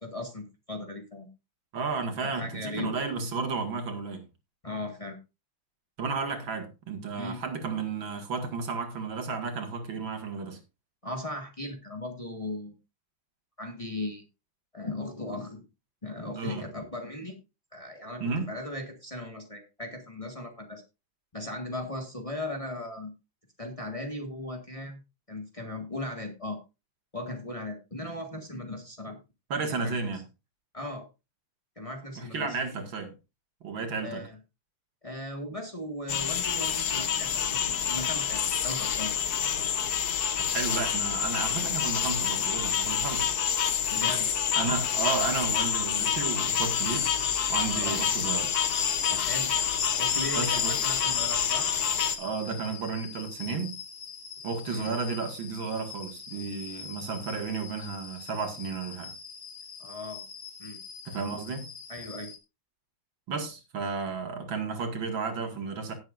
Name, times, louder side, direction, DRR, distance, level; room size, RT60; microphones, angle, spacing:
voice 1, 0.0-1.3 2.3-3.0 4.6-5.2 7.2-7.4 11.0-12.8 13.6-14.2 14.7-15.7 16.0-17.4 17.7-20.8 21.3-23.1 23.6-25.0 25.3-26.6 27.1-29.2 29.7-29.9 30.7-31.1 31.7-32.6 34.0-34.4 35.0-39.1 43.9-44.3 47.7-48.0 49.1-49.5 49.9-51.7 54.7-54.9 59.8-60.2 60.6-60.8 61.9-62.3, left 1 dB, 15° left, 1.7 m, -37 dB
voice 2, 1.7-4.3 6.0-10.6 16.4-16.6 18.2-18.5 29.5-30.2 32.1-33.1 33.6-34.3 40.5-43.3 44.6-47.1 47.5-48.5 50.3-50.8 52.2-53.8 54.4-59.1 61.0-61.7 63.3-65.9, right 4 dB, 65° right, 2.6 m, -33 dB
sound 1, 36.1-52.2, left 8 dB, 55° left, 1.3 m, -28 dB
sound 2, 46.7-62.4, left 6 dB, 80° left, 2.9 m, -40 dB
17.5 x 7.9 x 2.5 m
omnidirectional pair, 2.3 m